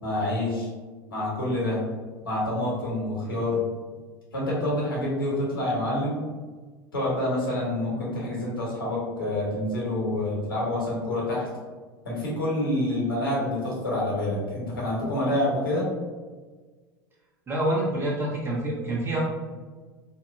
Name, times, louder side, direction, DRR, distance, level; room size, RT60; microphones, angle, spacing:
voice 1, 0.0-0.7 1.1-1.8 2.2-3.6 4.3-6.2 6.9-11.5 12.0-15.9, left 1 dB, 85° left, -6 dB, 1.0 m, -27 dB
voice 2, 17.5-19.2, right 1 dB, 20° right, -4 dB, 0.9 m, -27 dB
2.6 x 2.1 x 2.6 m, 1.4 s
hypercardioid pair, 80°, 11 cm